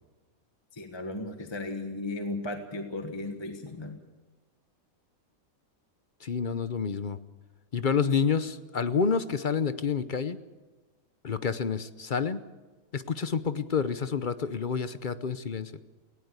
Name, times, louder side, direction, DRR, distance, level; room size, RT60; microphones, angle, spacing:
voice 1, 0.7-4.0, left 2 dB, 20° left, 5 dB, 1.4 m, -36 dB
voice 2, 6.2-7.2 7.7-10.4 11.2-12.4 12.9-15.7, left 6 dB, 40° left, 13 dB, 0.8 m, -28 dB
18.5 x 17.5 x 8.2 m, 1.2 s
omnidirectional pair, 1.5 m